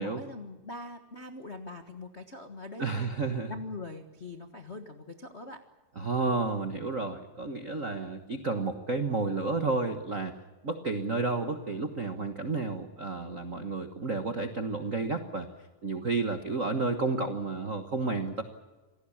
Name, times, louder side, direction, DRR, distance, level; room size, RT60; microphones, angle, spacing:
voice 1, 0.0-3.1 3.5-5.6, left 2 dB, 70° left, 4 dB, 0.6 m, -42 dB
voice 2, 2.8-3.5 6.0-10.4 10.6-15.5 15.8-18.4, right 3 dB, 90° right, 6 dB, 0.7 m, -31 dB
27.0 x 18.5 x 7.3 m, 1.2 s
omnidirectional pair, 3.9 m